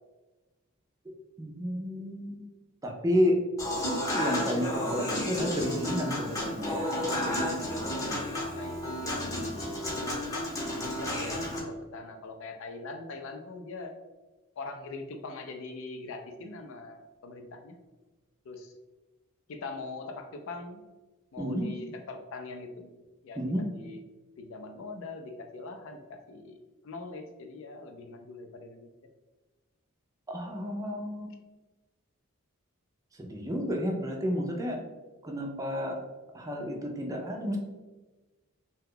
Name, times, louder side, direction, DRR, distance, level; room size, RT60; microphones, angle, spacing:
voice 1, 1.4-2.5 2.8-3.4 4.1-7.6 21.4-21.7 23.4-23.7 30.3-31.3 33.2-34.8 35.2-36.0 36.3-37.6, equal, 15° right, 1 dB, 0.4 m, -31 dB
Human voice / Acoustic guitar / Piano, 3.6-11.6, left 1 dB, 15° left, 0.7 m, -32 dB
voice 2, 8.5-9.4 9.8-10.2 10.7-13.9 14.6-17.8 18.4-18.7 19.5-20.8 21.3-22.9 23.2-23.4 23.7-24.0 24.4-26.6 26.8-28.9, left 3 dB, 65° left, 5 dB, 0.4 m, -42 dB
2.8 x 2.2 x 3.7 m, 1.2 s
head